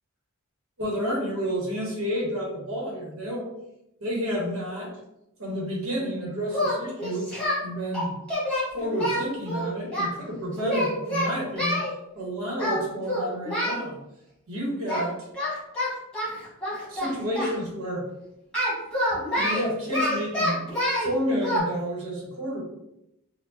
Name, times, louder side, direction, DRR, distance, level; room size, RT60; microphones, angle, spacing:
voice 1, 0.8-3.5 4.0-5.0 5.4-7.3 7.6-8.2 8.7-11.9 12.1-14.0 14.5-15.3 16.9-18.1 19.2-20.6 21.0-22.6, equal, 65° right, -3 dB, 1.3 m, -30 dB
Singing, 6.5-7.6 7.9-10.1 10.6-11.9 12.6-12.8 13.1-13.8 14.9-15.1 15.3-17.5 18.5-21.1 21.4-21.6, left 1 dB, 5° left, 1.5 m, -27 dB
4.2 x 2.2 x 2.9 m, 0.83 s
head